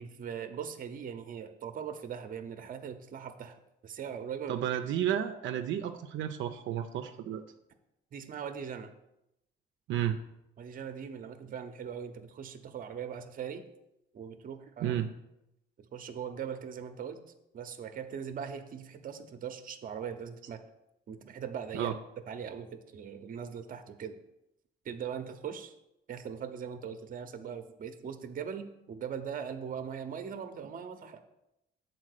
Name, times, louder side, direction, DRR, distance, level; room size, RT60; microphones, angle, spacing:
voice 1, 0.0-3.6 3.8-4.6 8.1-8.9 10.6-13.6 14.1-15.0 15.8-17.2 17.5-20.6 21.1-22.0 22.3-24.2 24.8-25.7 26.1-31.2, right 7 dB, 45° right, 9 dB, 0.7 m, -40 dB
voice 2, 4.5-7.4 9.9-10.2 14.8-15.1 21.7-21.9, right 10 dB, 80° right, 6 dB, 0.5 m, -32 dB
7.5 x 4.3 x 6.5 m, 0.86 s
cardioid pair, 135°, 20 cm